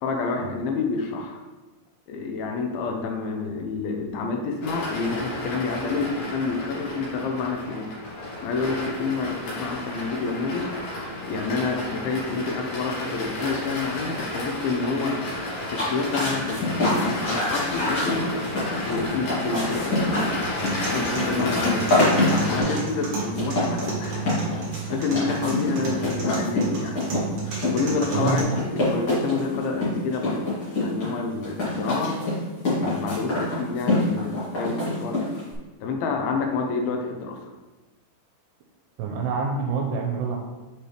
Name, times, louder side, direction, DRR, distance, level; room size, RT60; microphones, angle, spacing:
voice 1, 0.0-1.4 2.1-7.9 8.4-10.7 11.3-15.3 15.7-20.5 20.9-22.1 22.5-24.3 24.8-27.0 27.7-30.5 30.8-32.1 32.8-35.3 35.8-37.4, left 4 dB, 80° left, 2 dB, 2.2 m, -28 dB
sound 1, 4.6-22.6, left 1 dB, 60° left, 3.1 m, -32 dB
sound 2, 15.6-35.5, left 2 dB, 35° left, 2.5 m, -26 dB
sound 3, 20.4-28.4, right 5 dB, 55° right, 1.7 m, -32 dB
voice 2, 28.1-28.5 39.0-40.4, right 4 dB, 85° right, 1 dB, 2.5 m, -26 dB
7.7 x 4.4 x 3.3 m, 1.2 s
omnidirectional pair, 4.8 m